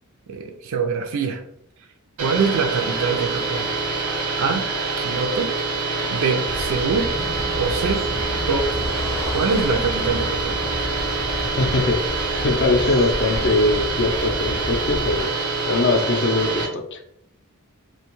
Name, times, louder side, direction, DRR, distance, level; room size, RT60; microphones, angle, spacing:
voice 1, 0.3-1.4 2.2-3.7 4.4-4.7 5.0-5.6 6.1-7.1 7.6-8.1 8.5-8.9 9.3-10.6, right 5 dB, 65° right, 4 dB, 0.3 m, -24 dB
sound 1, 2.2-16.7, right 3 dB, 90° right, 0.8 m, -26 dB
Car passing by, 6.4-13.3, left 1 dB, 85° left, 0.7 m, -38 dB
sound 2, 6.4-15.2, left 1 dB, 30° left, 0.7 m, -32 dB
voice 2, 11.6-12.0 12.4-15.3 15.7-17.0, left 2 dB, 50° left, 5 dB, 0.4 m, -21 dB
2.5 x 2.2 x 2.9 m, 0.75 s
head